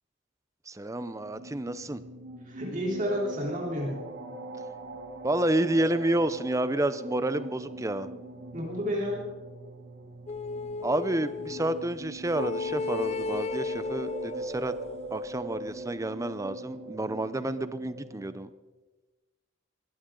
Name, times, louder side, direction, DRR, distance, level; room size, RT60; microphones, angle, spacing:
voice 1, 0.7-2.0 5.2-8.1 10.8-14.7 15.1-18.5, right 1 dB, 15° right, 13 dB, 0.6 m, -30 dB
sound 1, 1.1-18.4, right 2 dB, 60° right, 2.4 m, -42 dB
voice 2, 2.5-3.9 8.5-9.3, equal, 40° right, -3 dB, 3.5 m, -30 dB
sound 2, 10.3-11.8 12.3-15.1, left 4 dB, 30° left, 0.4 m, -34 dB
22.0 x 15.5 x 3.8 m, 1.2 s
head